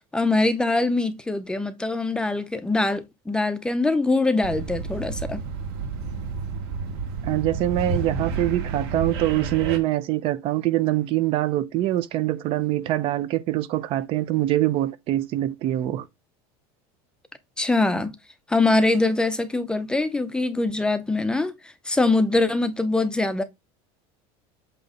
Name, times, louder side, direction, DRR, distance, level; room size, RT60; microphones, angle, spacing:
voice 1, 0.1-5.4 17.6-18.1 18.5-23.4, left 2 dB, 5° left, 0.6 m, -23 dB
sound 1, 4.4-9.8, right 5 dB, 90° right, 2.0 m, -30 dB
voice 2, 7.2-16.1, right 14 dB, 45° right, 0.6 m, -24 dB
8.0 x 3.0 x 4.9 m
cardioid pair, 160°, 13 cm